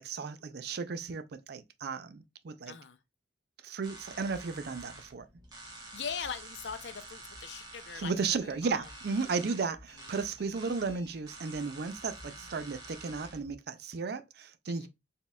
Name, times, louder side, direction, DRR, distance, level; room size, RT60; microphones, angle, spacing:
voice 1, 0.0-2.8 3.6-5.3 7.9-14.9, right 4 dB, 60° right, 0.4 m, -34 dB
voice 2, 2.7-3.0 5.9-8.9 10.0-10.2 12.2-12.9 14.7-14.9, left 6 dB, 75° left, 0.6 m, -42 dB
sound 1, 3.8-13.5, right 2 dB, 20° right, 1.0 m, -49 dB
Alarm, 7.4-11.2, left 2 dB, 60° left, 1.0 m, -58 dB
4.3 x 3.5 x 2.2 m
head